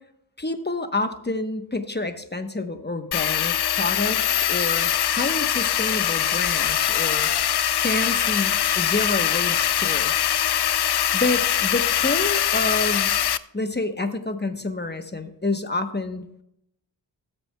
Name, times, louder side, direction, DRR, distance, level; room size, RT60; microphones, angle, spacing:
voice 1, 0.4-7.3 7.8-10.4 11.1-13.1 13.5-16.4, left 2 dB, 20° left, 8 dB, 1.0 m, -28 dB
sound 1, 3.1-13.4, left 10 dB, 60° left, 0.5 m, -22 dB
19.5 x 7.8 x 2.3 m, 0.78 s
wide cardioid pair, 50°, 46 cm